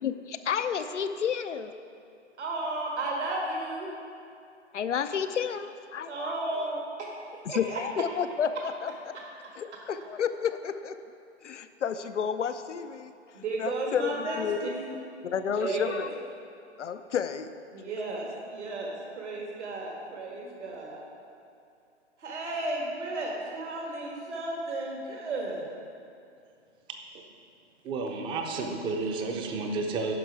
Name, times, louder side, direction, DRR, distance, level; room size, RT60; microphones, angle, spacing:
voice 1, 0.0-1.7 4.7-6.4 7.4-9.1 9.6-11.0 11.4-13.1 13.6-14.7 15.2-16.1 16.8-17.5, left 7 dB, 90° left, 10 dB, 0.6 m, -31 dB
voice 2, 2.4-3.9 6.0-7.1 7.5-7.8 13.3-14.8 15.6-16.1 17.7-21.0 22.2-25.6, right 2 dB, 75° right, -2 dB, 1.8 m, -33 dB
voice 3, 27.8-30.1, right 3 dB, 15° right, 3 dB, 0.5 m, -31 dB
9.7 x 5.9 x 4.7 m, 2.5 s
hypercardioid pair, 125°, 35 cm